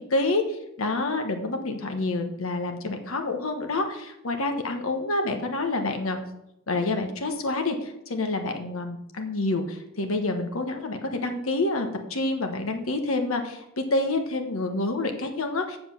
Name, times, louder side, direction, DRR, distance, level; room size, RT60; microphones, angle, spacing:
voice 1, 0.1-6.2 6.7-15.8, left 2 dB, 85° left, 5 dB, 1.2 m, -28 dB
7.7 x 6.9 x 7.0 m, 0.83 s
head